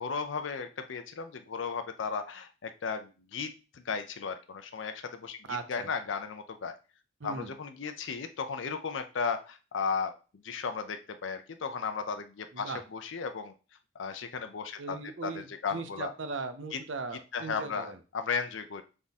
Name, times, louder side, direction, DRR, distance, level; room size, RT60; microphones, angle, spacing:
voice 1, 0.0-6.8 7.2-10.1 10.4-13.5 14.0-16.1 16.7-16.8 17.3-17.9 18.1-18.8, left 5 dB, 70° left, 8 dB, 0.5 m, -35 dB
voice 2, 5.5-5.9 7.2-7.5 12.5-12.8 14.8-18.0, right 4 dB, 70° right, 9 dB, 0.7 m, -38 dB
3.7 x 3.5 x 4.1 m, 0.33 s
head